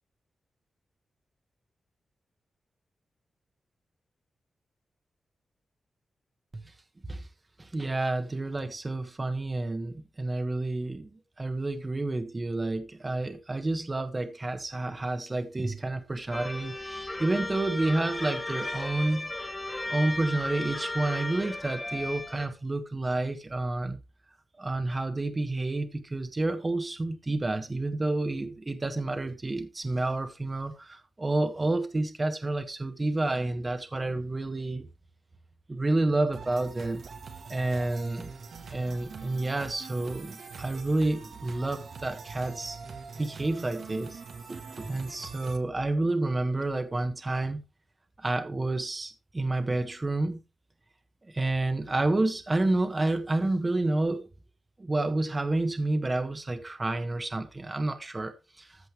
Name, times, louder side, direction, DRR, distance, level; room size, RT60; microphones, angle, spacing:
voice 1, 7.6-19.3 19.9-24.0 24.6-34.9 35.7-37.0 37.5-38.3 38.7-42.8 43.1-44.2 44.5-47.6 48.2-50.4 51.2-54.2 54.8-58.8, right 2 dB, 25° right, 1.4 m, -29 dB
sound 1, 16.3-22.5, left 2 dB, 20° left, 1.5 m, -35 dB
sound 2, 36.3-45.6, right 5 dB, 70° right, 1.6 m, -44 dB
14.5 x 5.3 x 3.4 m
cardioid pair, 90°, 0 cm